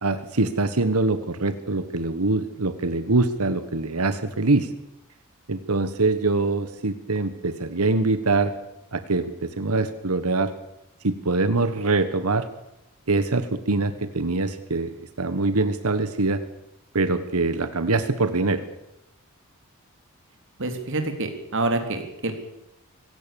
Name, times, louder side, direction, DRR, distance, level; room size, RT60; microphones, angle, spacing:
voice 1, 0.0-4.7 5.5-8.5 8.9-10.5 11.0-12.5 13.1-16.4 16.9-18.6, right 3 dB, 80° right, 11 dB, 1.4 m, -24 dB
voice 2, 20.6-22.3, right 2 dB, 60° right, 6 dB, 3.6 m, -27 dB
24.5 x 16.0 x 7.1 m, 0.88 s
head